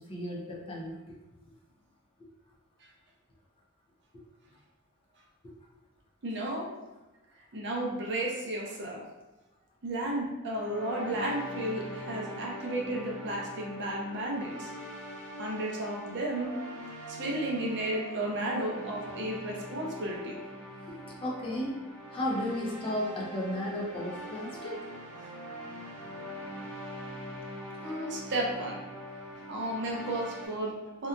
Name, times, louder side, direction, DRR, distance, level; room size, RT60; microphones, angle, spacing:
voice 1, 0.1-1.0 4.1-4.2 21.2-21.8 22.1-24.9, left 1 dB, 25° left, -3 dB, 0.5 m, -34 dB
voice 2, 6.2-6.7 7.5-9.0 9.8-14.7 15.4-16.6 17.1-20.4 25.2-25.3 27.8-28.8 29.5-31.1, right 1 dB, 55° right, -1 dB, 0.5 m, -33 dB
sound 1, 10.5-30.5, equal, 90° left, 1.1 m, -43 dB
2.7 x 2.2 x 2.4 m, 1.1 s
head